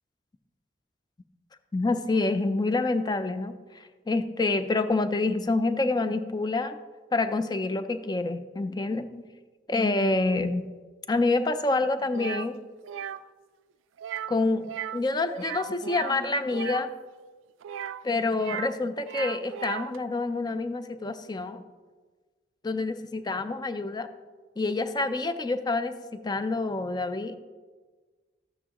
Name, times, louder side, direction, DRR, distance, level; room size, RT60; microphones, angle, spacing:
voice 1, 1.7-6.8 7.1-9.2 9.7-10.7 11.1-12.6 14.3-14.7 14.9-16.9 18.0-21.6 22.6-24.1 24.6-27.4, left 3 dB, 20° left, 10 dB, 0.4 m, -27 dB
sound 1, 12.1-12.5 12.8-13.2 14.0-14.4 14.6-15.0 15.3-16.8 17.6-18.7 19.0-20.0, right 9 dB, 90° right, 0.3 m, -36 dB
13.0 x 8.6 x 2.9 m, 1.4 s
head